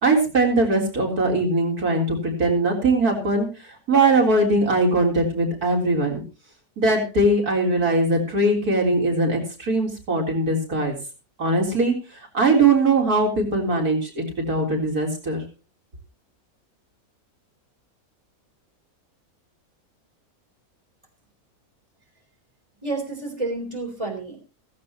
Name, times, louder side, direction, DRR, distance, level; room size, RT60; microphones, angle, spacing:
voice 1, 0.0-3.5 3.9-6.2 6.8-11.0 11.4-11.9 12.3-15.4, right 2 dB, 90° right, 0 dB, 4.3 m, -21 dB
voice 2, 22.8-24.4, right 2 dB, 20° right, 2 dB, 4.0 m, -30 dB
16.0 x 16.0 x 3.0 m, 0.32 s
omnidirectional pair, 1.6 m